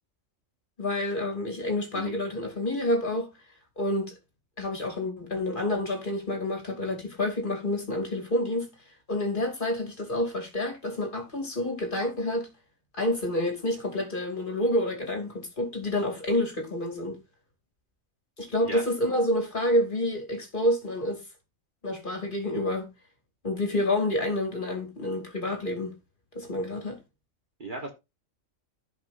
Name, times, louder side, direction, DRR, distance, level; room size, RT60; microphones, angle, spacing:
voice 1, 0.8-3.3 3.8-4.1 4.6-8.7 9.1-12.5 12.9-17.2 18.4-21.2 21.8-22.9 23.4-26.0 26.3-27.0, left 1 dB, 40° left, 2.8 m, -28 dB
voice 2, 27.6-27.9, right 2 dB, 40° right, 1.5 m, -36 dB
15.5 x 5.4 x 2.6 m
omnidirectional pair, 1.4 m